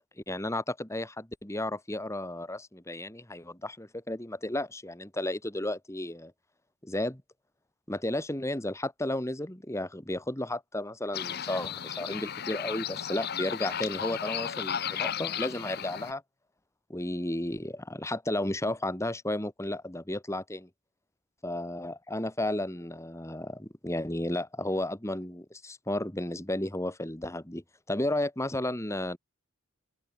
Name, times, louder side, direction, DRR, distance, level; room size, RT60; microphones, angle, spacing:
voice 1, 0.3-6.3 6.8-7.2 7.9-16.2 16.9-20.7 21.4-29.2, left 1 dB, 15° left, 1.9 m, -33 dB
sound 1, 11.1-16.1, left 9 dB, 50° left, 0.8 m, -34 dB
open air
head